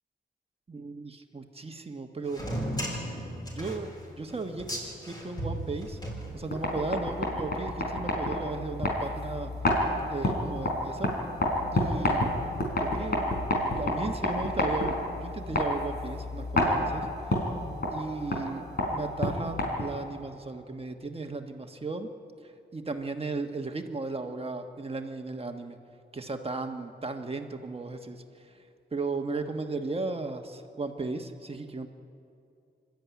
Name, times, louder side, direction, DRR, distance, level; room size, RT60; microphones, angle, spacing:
voice 1, 0.7-2.4 3.5-6.0 6.3-9.5 10.0-11.1 11.7-12.3 12.8-13.2 13.7-17.1 17.4-17.5 17.9-18.6 18.9-22.1 22.4-25.8 26.1-28.6 28.9-31.9, right 3 dB, 30° right, 5 dB, 1.4 m, -35 dB
sound 1, 2.3-6.8, equal, 20° left, 6.5 m, -36 dB
sound 2, 6.3-20.1, left 1 dB, 55° left, 4.5 m, -30 dB
25.5 x 13.0 x 9.5 m, 2.5 s
wide cardioid pair, 105°, 19 cm